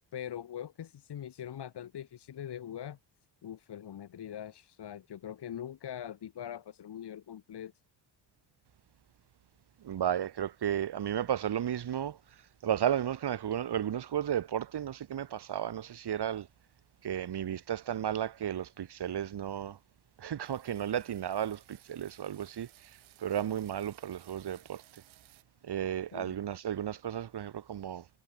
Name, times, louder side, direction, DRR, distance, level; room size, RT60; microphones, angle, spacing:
voice 1, 0.1-3.0 3.4-7.7 26.1-26.3, left 10 dB, 60° left, 3.3 m, -42 dB
voice 2, 9.8-16.5 17.0-19.8 20.2-24.8 25.6-28.1, right 10 dB, 55° right, 2.8 m, -34 dB
sound 1, 20.4-25.4, right 15 dB, 85° right, 6.2 m, -60 dB
cardioid pair, 95°, 46 cm